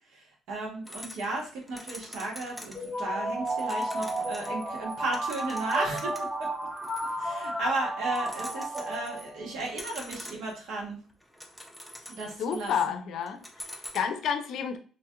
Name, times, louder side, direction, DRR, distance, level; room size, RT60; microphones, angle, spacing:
voice 1, 0.1-6.5 7.2-11.0 12.1-13.0, right 2 dB, 80° right, -1 dB, 1.3 m, -34 dB
sound 1, 0.9-3.0 3.3-7.7 8.0-9.3 9.6-10.7 11.1-12.9 13.3-14.0, left 1 dB, ahead, 0.6 m, -45 dB
sound 2, 2.7-9.6, right 1 dB, 30° right, 1.5 m, -33 dB
voice 2, 12.3-14.8, left 7 dB, 65° left, 8 dB, 0.5 m, -31 dB
3.0 x 2.7 x 2.5 m, 0.40 s
cardioid pair, 110°, 0 cm